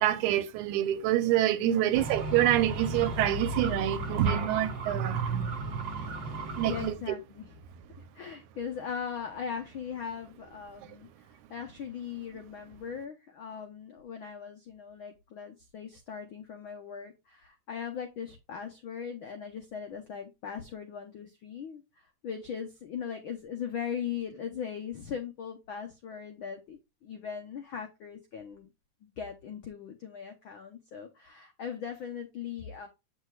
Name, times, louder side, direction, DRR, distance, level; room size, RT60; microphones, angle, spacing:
voice 1, 0.0-5.5 6.0-6.1 6.6-6.9, right 13 dB, 90° right, 2.2 m, -27 dB
voice 2, 1.6-2.1 6.7-7.5 8.1-11.1 11.5-21.8 22.2-28.7 29.0-32.9, left 7 dB, 80° left, 1.1 m, -39 dB
sound 1, 1.9-6.9, right 3 dB, 45° right, 1.9 m, -34 dB
8.4 x 6.2 x 2.3 m
omnidirectional pair, 3.4 m